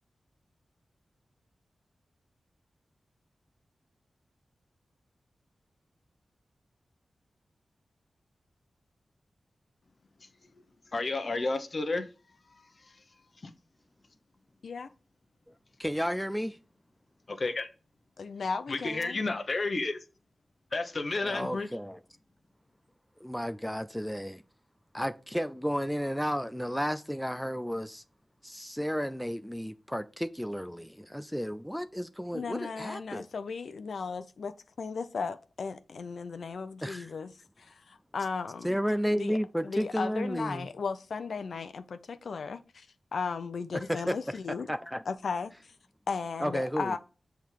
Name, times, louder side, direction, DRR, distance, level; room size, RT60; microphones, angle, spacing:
voice 1, 10.9-12.1 12.5-13.0 13.4-13.5 17.3-17.7 18.7-20.0 20.7-21.7, left 3 dB, 40° left, 0.9 m, -31 dB
voice 2, 15.8-16.6 21.2-22.0 23.2-24.4 24.9-28.0 28.4-33.3 36.8-37.1 38.6-40.7 43.7-44.1 44.7-45.0 46.4-46.9, equal, ahead, 0.3 m, -32 dB
voice 3, 18.2-19.2 32.3-37.3 37.6-38.8 39.1-39.4 39.6-42.9 43.1-44.7 45.1-45.7 46.1-47.0, left 5 dB, 75° left, 0.5 m, -36 dB
7.6 x 3.5 x 4.6 m
wide cardioid pair, 145°, 0 cm